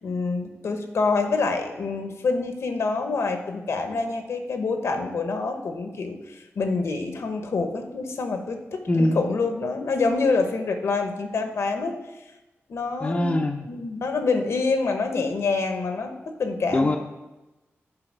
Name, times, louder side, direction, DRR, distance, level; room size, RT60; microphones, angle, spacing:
voice 1, 0.0-11.9 12.7-13.4 13.7-16.9, left 4 dB, 70° left, 6 dB, 0.9 m, -26 dB
voice 2, 8.9-9.3 13.0-13.7 16.7-17.0, left 1 dB, 25° left, 3 dB, 0.6 m, -22 dB
7.8 x 4.8 x 6.0 m, 1.0 s
wide cardioid pair, 150°, 5 cm